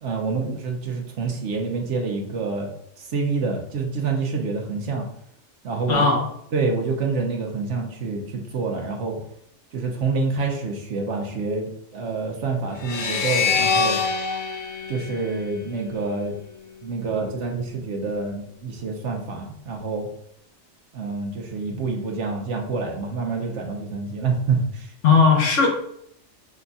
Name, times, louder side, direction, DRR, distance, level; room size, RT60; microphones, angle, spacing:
voice 1, 0.0-2.7 3.0-5.1 5.6-6.1 6.5-9.2 9.7-14.0 14.9-16.3 16.8-20.1 20.9-24.9, right 4 dB, 70° right, 1 dB, 1.2 m, -27 dB
voice 2, 5.9-6.3 25.0-25.7, left 5 dB, 80° left, 0 dB, 1.4 m, -17 dB
sound 1, 12.8-16.1, left 5 dB, 55° left, 0.6 m, -25 dB
5.1 x 2.4 x 3.9 m, 0.71 s
omnidirectional pair, 1.3 m